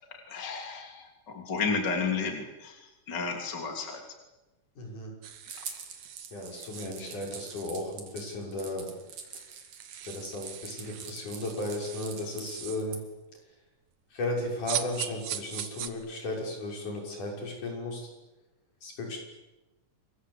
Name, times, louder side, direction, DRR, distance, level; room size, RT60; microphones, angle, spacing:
voice 1, 0.1-4.0, left 4 dB, 35° left, 3 dB, 3.6 m, -32 dB
voice 2, 4.8-5.1 6.3-9.0 10.1-13.0 14.1-18.0 18.8-19.2, left 1 dB, 75° left, 0 dB, 7.9 m, -35 dB
sound 1, 5.2-7.9 8.6-8.7 8.9-12.9 14.6-15.9, right 10 dB, 70° right, 2.8 m, -41 dB
sound 2, 5.5-13.0, right 6 dB, 85° right, 4.4 m, -44 dB
28.0 x 23.0 x 8.4 m, 1.1 s
omnidirectional pair, 3.6 m